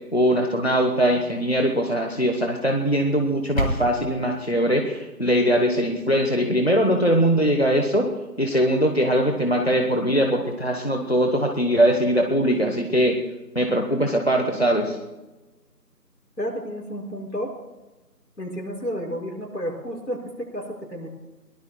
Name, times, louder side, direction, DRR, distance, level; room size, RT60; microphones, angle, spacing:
voice 1, 0.1-8.1 8.4-13.2 13.5-15.0, equal, 40° left, 3 dB, 1.1 m, -21 dB
sound 1, 3.1-4.1, equal, 55° left, 2.2 m, -28 dB
voice 2, 16.4-17.5 18.4-21.1, equal, 80° left, -1 dB, 5.8 m, -31 dB
23.0 x 18.0 x 2.3 m, 1.1 s
figure-of-eight pair, 175°, 50 cm